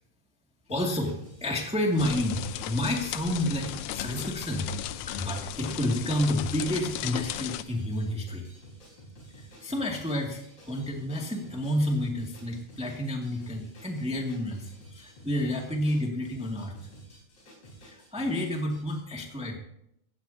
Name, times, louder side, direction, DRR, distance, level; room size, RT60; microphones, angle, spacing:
sound 1, 0.7-19.0, right 1 dB, 50° left, 5.8 m, -51 dB
voice 1, 0.7-4.7 5.1-8.5 9.6-10.4 10.7-16.7 17.8-19.6, left 1 dB, 5° right, 0 dB, 1.3 m, -30 dB
sound 2, 2.0-7.6, left 12 dB, 85° left, 1.6 m, -36 dB
16.0 x 16.0 x 2.8 m, 0.76 s
omnidirectional pair, 3.9 m